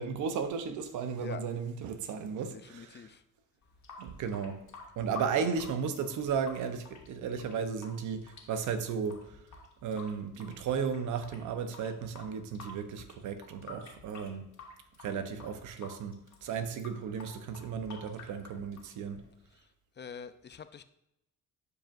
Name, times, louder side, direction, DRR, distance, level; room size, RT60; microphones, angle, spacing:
voice 1, 0.0-3.0 4.0-4.6 5.0-9.4 9.8-14.5 15.0-19.2, right 6 dB, 80° right, 0.9 m, -35 dB
voice 2, 2.5-3.2 19.5-20.8, left 7 dB, 35° left, 0.5 m, -45 dB
Water tap faucet / Sink (filling or washing) / Drip, 3.6-19.6, left 4 dB, 70° left, 2.1 m, -51 dB
12.0 x 5.0 x 2.6 m
cardioid pair, 90°, 30 cm